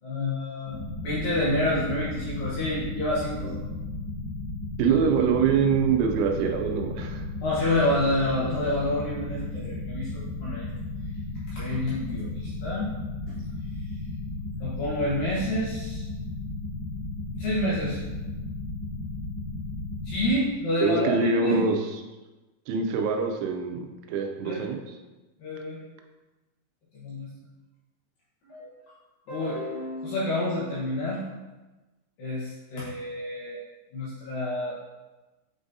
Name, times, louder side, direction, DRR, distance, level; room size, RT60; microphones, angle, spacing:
voice 1, 0.0-3.6 7.4-10.7 11.5-12.9 13.3-13.4 14.6-16.0 17.4-18.0 20.0-21.6 24.4-24.7 25.4-25.8 26.9-27.3 28.5-28.7 29.3-31.3 32.2-33.6 33.9-34.8, left 1 dB, 70° left, -9 dB, 2.2 m, -28 dB
sound 1, 0.7-20.3, left 2 dB, 55° left, 3.5 m, -34 dB
voice 2, 4.8-7.3 20.8-21.8 22.7-24.8, right 5 dB, 85° right, 3 dB, 3.1 m, -24 dB
7.8 x 4.9 x 2.7 m, 1.1 s
omnidirectional pair, 5.5 m